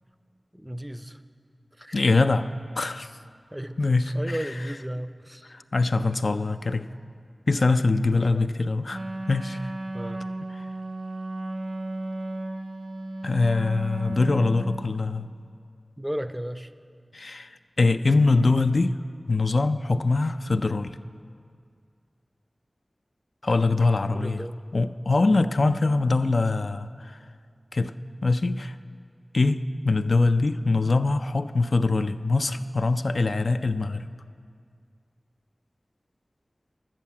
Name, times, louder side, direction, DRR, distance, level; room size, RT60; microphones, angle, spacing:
voice 1, 0.5-1.2 1.8-2.0 3.5-3.8 4.1-5.6 8.1-8.6 9.9-10.2 16.0-16.7 24.1-24.6, equal, 10° right, 11 dB, 0.4 m, -34 dB
voice 2, 1.9-2.5 2.8-3.1 3.8-4.4 5.5-6.9 7.5-9.0 9.3-9.7 10.6-10.7 13.2-15.3 17.1-17.5 17.8-18.9 19.3-21.0 23.4-24.4 24.7-27.2 27.7-27.9 28.2-28.8 29.3-34.1, left 3 dB, 70° left, 9 dB, 0.3 m, -23 dB
Wind instrument woodwind instrument, 8.9-15.0, right 2 dB, 65° right, 0.5 m, -34 dB
10.5 x 7.4 x 8.4 m, 2.3 s
wide cardioid pair, 45°, 0 cm